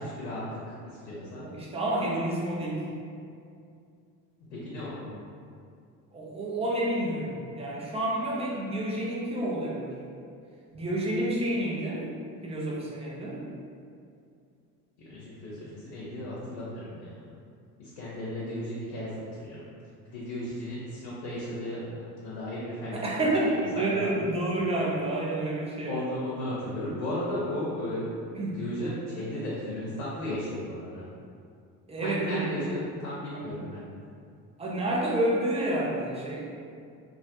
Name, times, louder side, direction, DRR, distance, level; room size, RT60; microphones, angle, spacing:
voice 1, 0.0-1.5 4.5-5.0 15.0-17.4 17.8-19.7 20.0-22.0 22.2-24.1 25.9-28.1 28.6-31.1 32.0-33.8, left 1 dB, 75° left, -7 dB, 0.7 m, -35 dB
voice 2, 1.4-2.8 6.1-10.0 10.7-12.1 12.4-13.4 22.9-26.0 28.3-28.6 31.9-32.7 33.5-33.6 34.6-36.5, right 1 dB, 15° right, -5 dB, 0.5 m, -29 dB
2.3 x 2.0 x 2.8 m, 2.4 s
hypercardioid pair, 65°, 49 cm